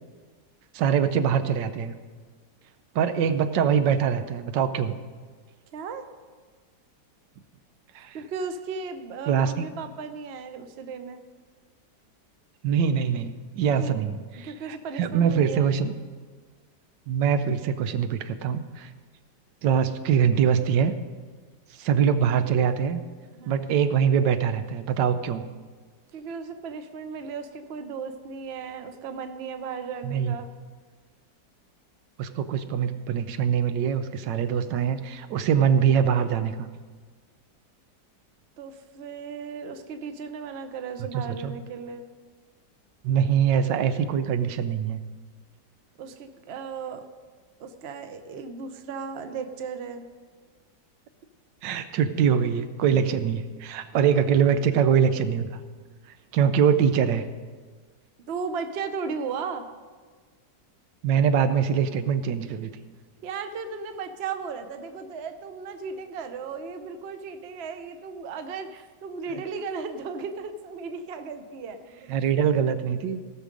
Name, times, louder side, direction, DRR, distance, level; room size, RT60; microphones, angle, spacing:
voice 1, 0.7-1.9 2.9-5.0 7.9-8.2 9.3-9.6 12.6-15.9 17.1-18.9 19.6-20.9 21.8-23.0 23.4-25.4 30.0-30.4 32.2-36.7 41.1-41.5 43.0-45.0 51.6-55.5 56.3-57.2 61.0-62.7 69.3-69.4 72.1-73.2, right 7 dB, 90° right, 10 dB, 1.4 m, -23 dB
voice 2, 5.7-6.0 8.1-11.2 13.6-14.0 14.4-15.7 23.3-23.6 26.1-30.5 38.6-42.0 46.0-47.0 47.6-50.1 58.3-59.7 63.2-72.2, right 5 dB, 55° right, 8 dB, 0.8 m, -36 dB
17.0 x 6.4 x 5.1 m, 1.5 s
omnidirectional pair, 1.9 m